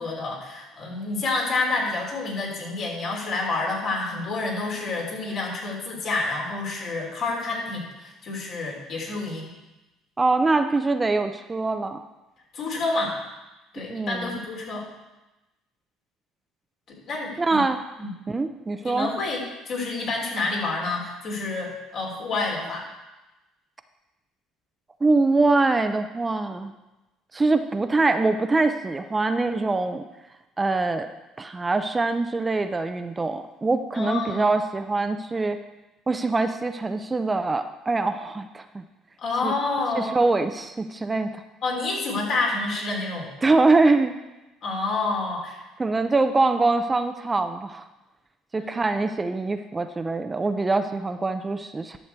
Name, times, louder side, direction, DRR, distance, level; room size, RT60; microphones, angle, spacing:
voice 1, 0.0-9.5 12.5-13.2 13.7-14.8 16.9-17.6 18.0-18.1 18.8-22.8 33.9-34.5 39.2-40.1 41.6-43.3 44.6-45.6 48.5-48.7, left 3 dB, 60° left, -1 dB, 3.3 m, -28 dB
voice 2, 10.2-12.0 13.9-14.4 17.4-17.8 18.3-19.1 25.0-26.7 27.3-30.0 30.6-31.1 31.4-35.6 36.1-38.8 39.4-39.5 39.9-41.4 43.4-44.2 45.8-47.8 48.5-52.0, right 3 dB, 20° right, 8 dB, 0.5 m, -23 dB
11.5 x 6.5 x 4.5 m, 1.0 s
supercardioid pair, 85°, 0 cm